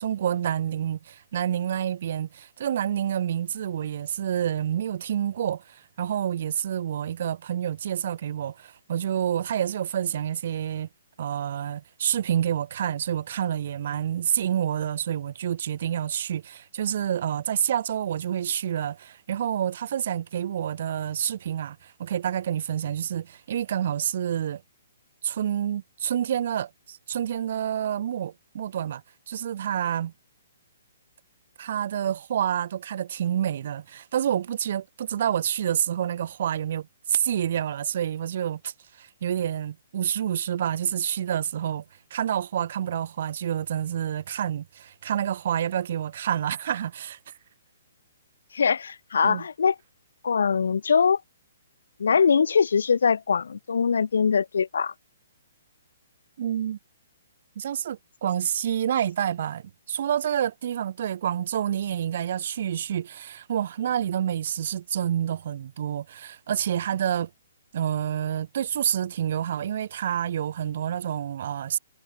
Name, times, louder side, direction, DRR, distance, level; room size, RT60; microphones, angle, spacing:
voice 1, 0.0-10.9 11.2-24.6 25.2-30.1 31.6-41.8 42.1-47.3 49.2-49.4 56.4-56.8 57.6-67.3 67.7-71.8, right 10 dB, 55° right, 1.8 m, -28 dB
voice 2, 48.5-49.8 50.2-51.2 52.0-54.9, left 6 dB, 70° left, 1.7 m, -22 dB
figure-of-eight pair, 130°, 0 cm